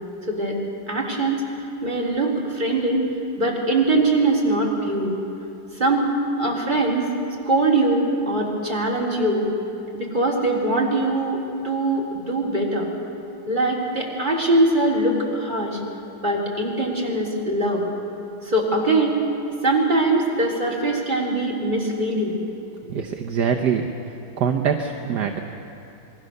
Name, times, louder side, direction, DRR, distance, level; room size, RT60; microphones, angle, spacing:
voice 1, 0.3-0.6 0.9-1.4 1.8-3.0 3.4-5.2 5.7-6.1 6.4-7.1 7.5-9.5 9.9-12.9 13.5-15.8 16.2-17.8 18.4-19.2 19.6-22.4, right 2 dB, 25° right, -3 dB, 3.7 m, -22 dB
voice 2, 22.8-25.4, right 7 dB, 65° right, 4 dB, 1.5 m, -24 dB
27.0 x 21.0 x 6.7 m, 2.8 s
omnidirectional pair, 2.1 m